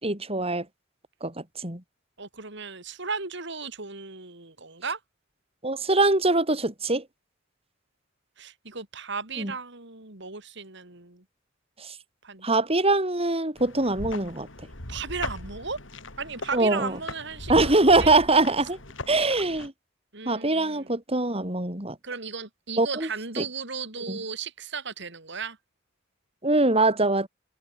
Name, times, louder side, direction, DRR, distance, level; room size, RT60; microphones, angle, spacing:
voice 1, 0.0-0.6 1.2-1.8 5.6-7.0 9.4-9.5 11.8-11.9 12.4-14.5 16.5-17.0 17.5-18.8 19.1-19.7 20.2-21.9 22.8-23.1 23.4-23.5 24.1-24.2 26.4-27.3, right 2 dB, 30° right, 6.6 m, -23 dB
voice 2, 2.2-5.0 8.4-11.2 12.2-12.5 14.9-15.8 16.2-17.7 18.0-18.1 20.1-20.9 22.0-25.6, right 5 dB, 65° right, 4.2 m, -35 dB
sound 1, 13.6-19.7, left 2 dB, 70° left, 5.4 m, -39 dB
head